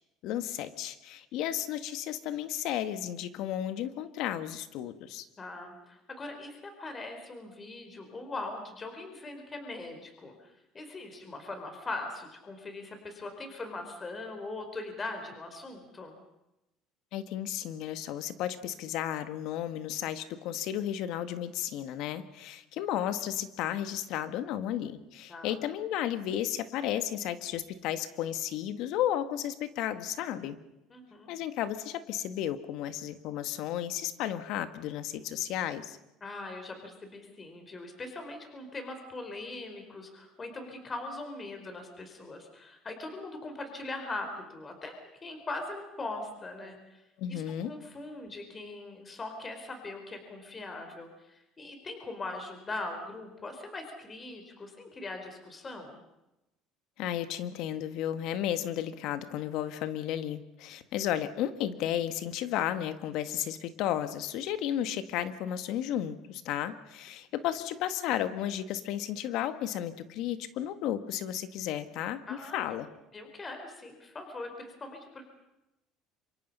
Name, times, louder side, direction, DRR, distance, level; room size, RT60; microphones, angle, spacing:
voice 1, 0.2-5.3 17.1-30.6 31.3-36.0 47.2-47.7 57.0-72.9, left 11 dB, 70° left, 11 dB, 1.8 m, -33 dB
voice 2, 5.4-16.2 25.3-25.5 30.9-31.3 36.2-47.0 47.3-56.0 72.3-72.8 73.1-75.3, left 2 dB, 25° left, 5 dB, 4.7 m, -41 dB
26.5 x 24.0 x 5.6 m, 0.93 s
supercardioid pair, 115°, 0 cm